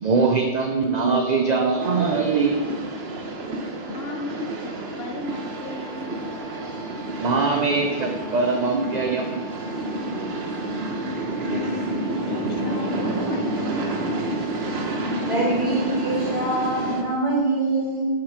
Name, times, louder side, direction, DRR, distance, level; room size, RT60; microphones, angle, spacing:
voice 1, 0.0-2.7 7.2-9.4, right 4 dB, 45° right, 3 dB, 0.7 m, -22 dB
sound 1, 1.8-17.0, right 2 dB, 70° right, 1.2 m, -29 dB
voice 2, 3.9-6.3 11.5-14.1, left 3 dB, 65° left, 6 dB, 0.9 m, -36 dB
sound 2, 5.2-16.7, equal, 80° left, 2.3 m, -44 dB
voice 3, 15.2-18.0, right 2 dB, 30° right, -7 dB, 3.1 m, -24 dB
8.0 x 7.3 x 5.0 m, 1.4 s
omnidirectional pair, 1.1 m